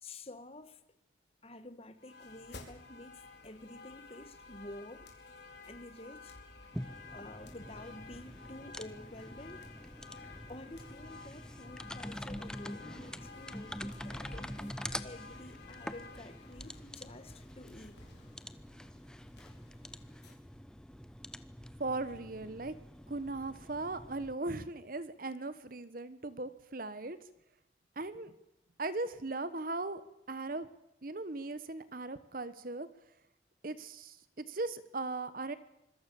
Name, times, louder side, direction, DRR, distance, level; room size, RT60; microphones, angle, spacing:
voice 1, 0.0-0.8 1.4-5.1 5.6-6.4 7.1-9.6 10.1-14.8 15.0-18.1, left 1 dB, 30° left, 1.8 m, -50 dB
sound 1, 2.0-20.3, left 4 dB, 60° left, 4.7 m, -53 dB
sound 2, 6.7-24.3, equal, 5° left, 0.8 m, -46 dB
voice 2, 21.8-22.8 23.1-27.2 28.0-28.3 28.8-30.7 31.0-32.9 33.6-35.5, right 2 dB, 45° right, 1.2 m, -38 dB
26.0 x 21.5 x 7.1 m
head